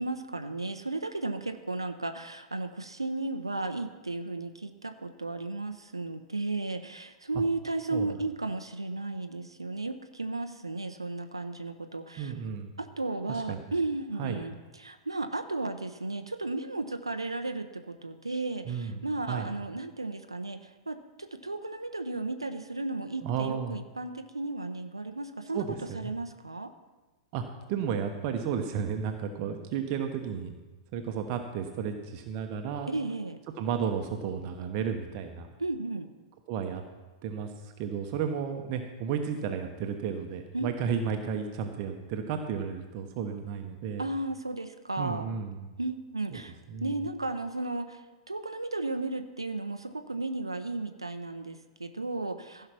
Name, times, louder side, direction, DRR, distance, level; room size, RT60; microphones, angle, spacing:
voice 1, 0.0-12.3 12.8-25.6 25.9-26.7 32.9-33.4 35.6-36.1 40.5-40.7 44.0-45.3 45.8-52.7, right 2 dB, 85° right, 8 dB, 0.7 m, -34 dB
voice 2, 12.2-12.7 13.3-13.6 14.2-14.4 18.6-19.0 19.3-19.5 23.2-23.8 25.5-26.1 27.3-27.4 27.7-30.5 30.9-32.9 33.6-35.5 36.5-36.8 37.2-44.1 45.0-45.7 46.3-46.4 46.7-46.9, right 7 dB, 40° right, 5 dB, 1.1 m, -33 dB
15.5 x 5.7 x 5.9 m, 1.2 s
figure-of-eight pair, 100°, 3 cm